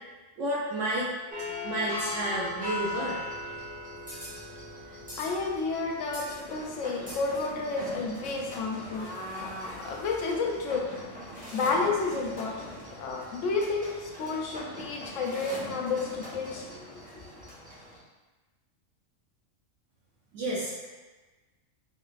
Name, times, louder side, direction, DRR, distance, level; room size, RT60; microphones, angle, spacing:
voice 1, 0.4-1.1 1.6-3.2 20.3-20.9, right 1 dB, 70° right, -5 dB, 0.9 m, -30 dB
sound 1, 1.3-18.0, left 1 dB, 10° right, 0.6 m, -40 dB
voice 2, 5.2-10.9 11.3-12.7 13.0-16.9 17.1-17.4, left 4 dB, 75° left, 0 dB, 0.9 m, -31 dB
3.3 x 2.9 x 2.4 m, 1.2 s
omnidirectional pair, 1.4 m